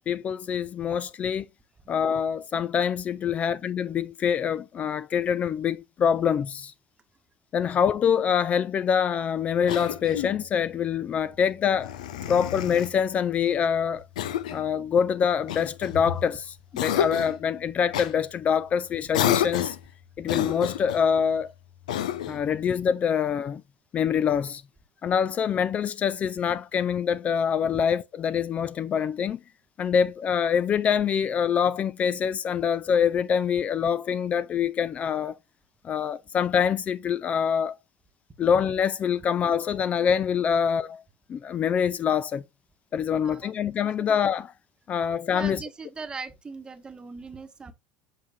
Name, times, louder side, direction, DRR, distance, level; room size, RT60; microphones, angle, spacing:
voice 1, 0.1-1.5 1.9-6.7 7.5-11.9 12.3-14.0 14.5-19.8 20.2-21.5 22.3-23.6 23.9-24.6 25.0-29.4 29.8-35.4 35.8-37.8 38.4-41.0 41.3-42.4 42.9-44.5 44.9-45.6, left 7 dB, 35° left, 0.4 m, -25 dB
Cough, 9.7-10.4 11.8-13.0 14.2-14.7 15.5-16.3 16.8-17.4 17.9-18.1 19.1-19.8 20.3-21.0 21.9-22.4, left 10 dB, 85° left, 0.5 m, -29 dB
voice 2, 43.1-43.5 45.3-47.7, right 4 dB, 25° right, 1.1 m, -39 dB
7.5 x 5.8 x 2.3 m
hypercardioid pair, 90°, 4 cm